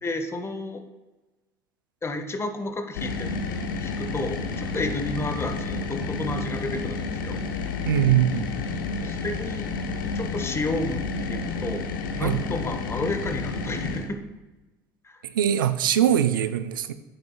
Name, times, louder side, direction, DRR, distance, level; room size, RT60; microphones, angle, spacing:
voice 1, 0.0-0.8 2.0-3.4 3.8-7.4 9.0-9.7 10.1-11.9 12.1-14.2 15.0-15.2, left 2 dB, 25° left, 7 dB, 1.0 m, -31 dB
sound 1, 2.9-14.1, left 4 dB, 85° left, 0.7 m, -30 dB
voice 2, 7.8-8.5 12.2-12.4 15.4-16.9, right 10 dB, 90° right, 11 dB, 0.4 m, -22 dB
9.1 x 7.8 x 2.3 m, 1.1 s
hypercardioid pair, 70°, 11 cm